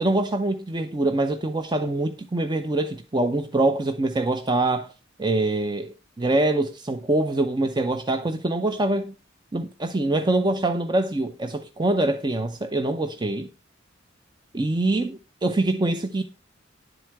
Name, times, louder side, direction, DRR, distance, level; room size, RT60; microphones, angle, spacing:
voice 1, 0.0-4.9 5.2-9.1 9.5-13.5 14.5-16.2, right 2 dB, 25° right, 0.6 m, -24 dB
10.5 x 8.0 x 4.6 m
head